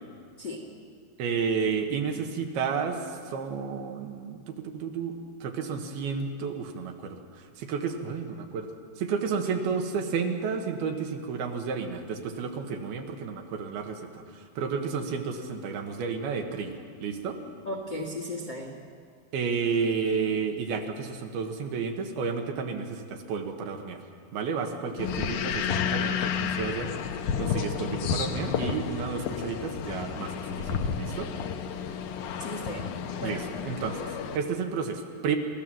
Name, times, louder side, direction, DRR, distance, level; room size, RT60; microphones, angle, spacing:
voice 1, 1.2-8.7 9.0-17.4 19.3-24.0 24.3-26.9 27.4-31.3 33.2-35.4, right 5 dB, 75° right, 4 dB, 3.2 m, -31 dB
voice 2, 17.6-18.7 32.4-32.9 33.2-33.4, left 1 dB, 40° left, 2 dB, 1.6 m, -35 dB
sound 1, 25.0-34.4, left 7 dB, 70° left, 1.9 m, -31 dB
29.5 x 14.5 x 7.7 m, 2.1 s
omnidirectional pair, 4.7 m